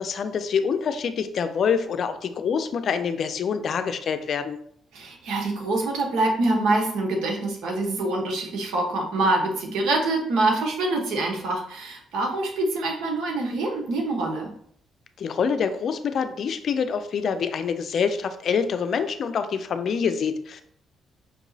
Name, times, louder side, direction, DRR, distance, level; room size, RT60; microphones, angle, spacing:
voice 1, 0.0-4.6 15.2-20.6, left 6 dB, 60° left, 9 dB, 0.4 m, -26 dB
voice 2, 4.9-14.5, right 2 dB, 85° right, 1 dB, 1.0 m, -25 dB
5.2 x 2.9 x 2.7 m, 0.65 s
cardioid pair, 90°, 0 cm